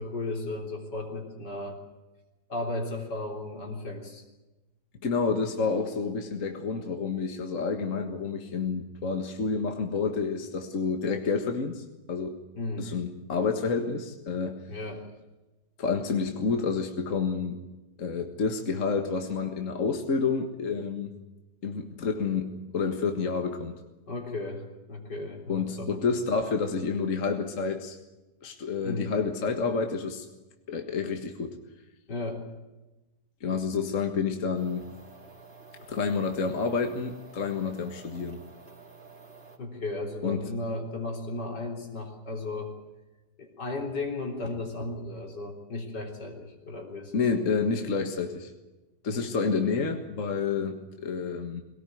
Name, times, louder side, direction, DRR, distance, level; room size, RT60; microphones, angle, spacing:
voice 1, 0.0-1.8 2.5-4.2 12.6-12.9 14.7-15.1 24.1-25.9 28.8-29.1 32.1-32.4 39.6-42.7 43.4-47.2 49.1-49.3, left 2 dB, 75° left, 2 dB, 4.3 m, -35 dB
voice 2, 5.0-12.4 12.8-14.6 15.8-17.6 18.0-21.1 21.6-23.7 25.5-28.0 28.4-30.3 30.7-31.6 33.4-34.8 35.9-38.4 40.2-40.4 47.1-48.5 49.0-51.6, left 5 dB, 45° left, 5 dB, 1.9 m, -29 dB
sound 1, 34.5-39.6, right 4 dB, 35° right, 2.8 m, -50 dB
22.0 x 18.5 x 9.3 m, 1.1 s
omnidirectional pair, 1.8 m